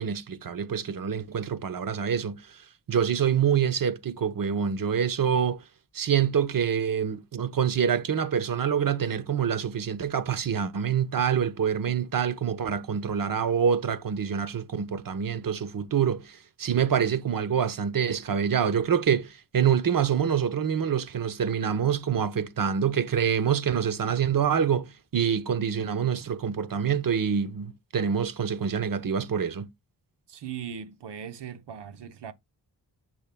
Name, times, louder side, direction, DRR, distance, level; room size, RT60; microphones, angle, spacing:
voice 1, 0.0-2.4 2.9-5.6 5.9-29.7, right 7 dB, 55° right, 0.9 m, -26 dB
voice 2, 30.3-32.3, right 8 dB, 85° right, 1.0 m, -39 dB
10.0 x 6.2 x 2.2 m
wide cardioid pair, 105°, 40 cm